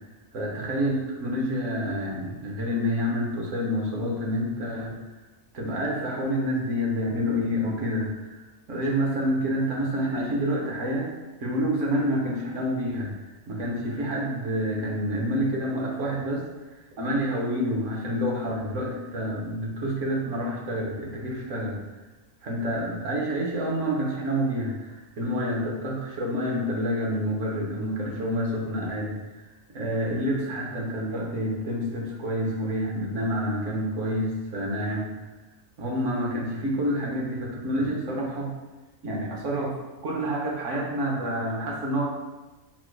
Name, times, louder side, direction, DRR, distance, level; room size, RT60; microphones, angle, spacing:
voice 1, 0.3-4.9 5.5-8.4 8.7-16.4 16.7-21.8 22.4-35.1 35.8-38.5 39.0-39.8 40.0-42.1, equal, 65° right, -2 dB, 1.2 m, -28 dB
4.2 x 2.2 x 4.5 m, 1.1 s
omnidirectional pair, 1.4 m